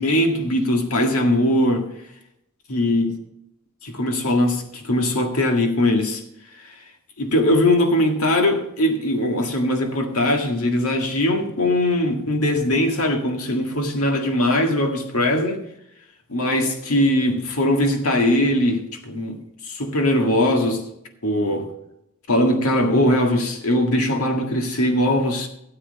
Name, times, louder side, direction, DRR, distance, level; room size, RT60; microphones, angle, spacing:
voice 1, 0.0-1.9 2.7-3.1 3.8-6.2 7.2-15.6 16.3-20.8 21.2-21.7 22.3-25.5, left 1 dB, 75° left, 1.8 m, -20 dB
13.0 x 7.9 x 4.1 m
head